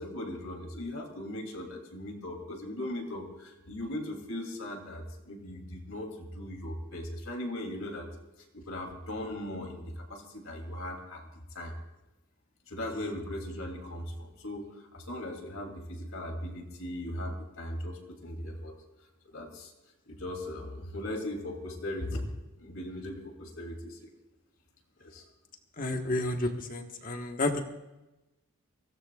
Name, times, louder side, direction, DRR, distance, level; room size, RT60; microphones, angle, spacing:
voice 1, 0.0-8.1 8.5-11.3 11.5-11.7 12.7-18.7 19.2-19.7 20.1-22.3 22.6-24.1 25.0-25.2, left 1 dB, 65° left, 2 dB, 2.8 m, -38 dB
voice 2, 25.8-27.6, left 2 dB, 40° left, 4 dB, 1.4 m, -31 dB
23.5 x 17.0 x 2.4 m, 1.0 s
head